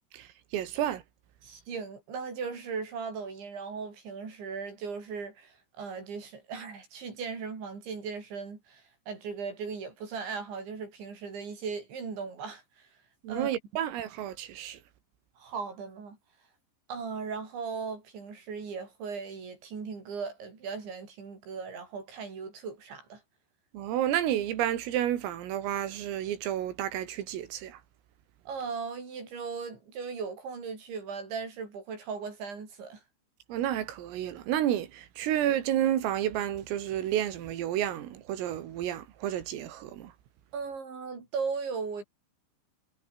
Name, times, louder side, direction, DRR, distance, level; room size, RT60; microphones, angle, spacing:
voice 1, 0.5-1.0 13.2-14.8 23.7-27.8 33.5-40.1, right 11 dB, 85° right, 5.1 m, -30 dB
voice 2, 1.4-12.9 13.3-13.5 15.4-16.2 16.9-23.2 28.5-33.0 40.5-42.0, right 5 dB, 65° right, 8.5 m, -38 dB
omnidirectional pair, 5.8 m